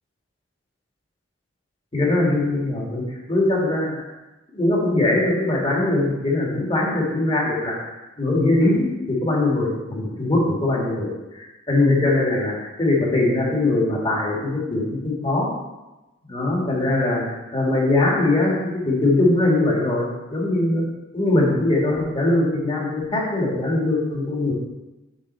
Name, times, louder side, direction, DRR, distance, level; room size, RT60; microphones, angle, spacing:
voice 1, 1.9-3.9 4.5-7.7 8.2-15.5 16.3-17.2 17.5-18.5 18.9-20.8 21.1-24.5, left 2 dB, 30° left, -3 dB, 1.8 m, -21 dB
7.3 x 4.0 x 5.6 m, 1.1 s
head